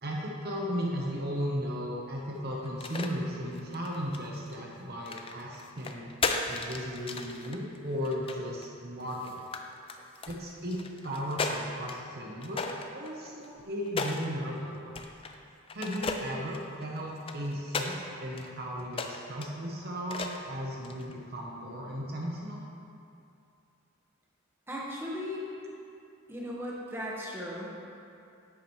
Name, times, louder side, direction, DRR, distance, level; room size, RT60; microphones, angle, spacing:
voice 1, 0.0-6.1 6.5-9.4 10.3-14.9 15.7-22.6, equal, 45° right, -2 dB, 0.9 m, -36 dB
sound 1, 2.6-3.1 3.5-4.5 5.1-8.7 9.1-9.6 9.9-12.0 12.4-14.3 15.0-15.4 15.7-18.0 18.4-18.5 18.9-19.5 20.1-20.5 20.8-21.1, left 4 dB, 25° left, 0.4 m, -35 dB
voice 2, 24.7-25.5 26.3-27.8, left 1 dB, 10° right, -5 dB, 1.2 m, -37 dB
10.5 x 8.4 x 3.1 m, 2.6 s
head